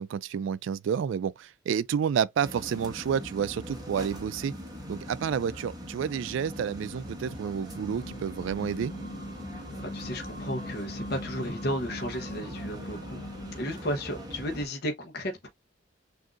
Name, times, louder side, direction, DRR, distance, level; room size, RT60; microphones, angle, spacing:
voice 1, 0.0-4.5 4.9-8.9, right 7 dB, 70° right, 0.3 m, -30 dB
sound 1, 2.4-14.7, equal, 20° right, 1.3 m, -41 dB
sound 2, 7.9-13.6, equal, 75° left, 1.1 m, -42 dB
voice 2, 9.9-13.2 13.5-15.5, equal, 55° left, 0.9 m, -33 dB
6.2 x 2.7 x 2.4 m
head